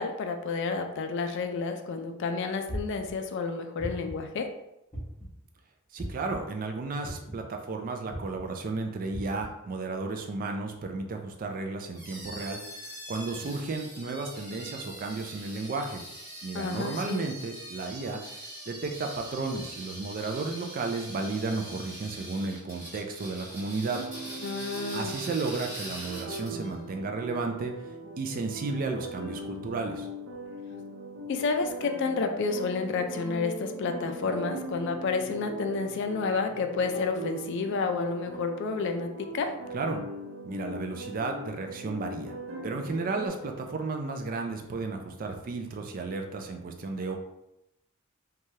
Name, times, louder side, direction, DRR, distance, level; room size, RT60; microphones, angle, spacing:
voice 1, 0.0-4.5 16.5-17.2 24.4-25.2 31.3-39.5, left 4 dB, 55° left, 6 dB, 0.3 m, -30 dB
sound 1, 2.7-3.1 3.8-4.3 4.9-5.4 6.0-6.3 7.0-7.4 8.1-8.4 9.1-9.5, equal, 10° left, 0.8 m, -37 dB
voice 2, 5.9-16.0 16.4-24.0 24.9-27.7 28.2-30.1 39.7-40.0 40.4-42.3 42.6-47.2, right 3 dB, 40° right, 4 dB, 0.3 m, -33 dB
sound 2, 11.9-26.7, right 1 dB, 15° right, 1.1 m, -43 dB
sound 3, 23.9-43.3, right 1 dB, 70° right, 0.7 m, -40 dB
3.1 x 2.3 x 2.7 m, 0.88 s
head